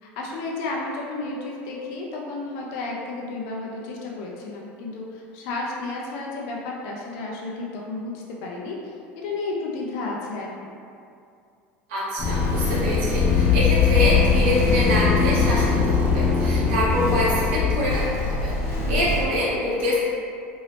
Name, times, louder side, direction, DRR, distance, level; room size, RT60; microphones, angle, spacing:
voice 1, 0.0-8.8 9.1-10.5 18.8-19.1, left 3 dB, 65° left, -3 dB, 0.6 m, -32 dB
voice 2, 11.9-20.0, left 1 dB, 80° right, -7 dB, 0.7 m, -25 dB
sound 1, 12.2-19.3, left 5 dB, 40° left, 0.8 m, -21 dB
2.7 x 2.6 x 3.3 m, 2.4 s
hypercardioid pair, 90°, 6 cm